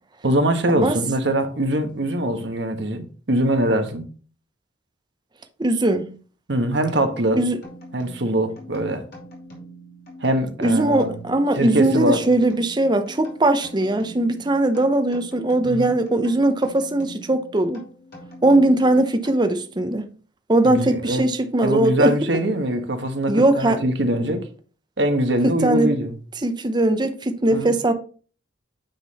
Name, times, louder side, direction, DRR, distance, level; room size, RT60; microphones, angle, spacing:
voice 1, 0.2-4.1 6.5-7.4 7.9-9.0 10.2-11.2 11.6-12.2 15.6-15.9 20.6-21.2 21.6-24.5 25.0-26.1 27.5-27.7, right 1 dB, 65° right, 1.2 m, -22 dB
voice 2, 5.6-6.1 7.4-7.6 10.6-17.8 18.4-20.1 20.5-22.2 23.3-23.8 25.4-25.9 26.4-27.9, right 2 dB, 25° right, 0.7 m, -20 dB
sound 1, 7.6-19.8, equal, 55° left, 2.7 m, -43 dB
9.1 x 3.8 x 4.1 m
head